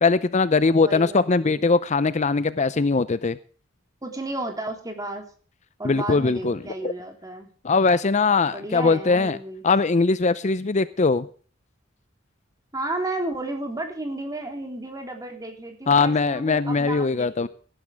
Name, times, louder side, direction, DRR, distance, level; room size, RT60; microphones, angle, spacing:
voice 1, 0.0-3.4 5.8-6.6 6.8-6.9 7.6-9.4 9.6-11.3 15.9-17.5, left 4 dB, 35° left, 0.6 m, -21 dB
voice 2, 0.8-1.6 4.0-5.3 5.8-7.5 8.4-9.6 12.7-17.5, right 2 dB, 20° right, 3.3 m, -33 dB
18.0 x 11.5 x 3.5 m
head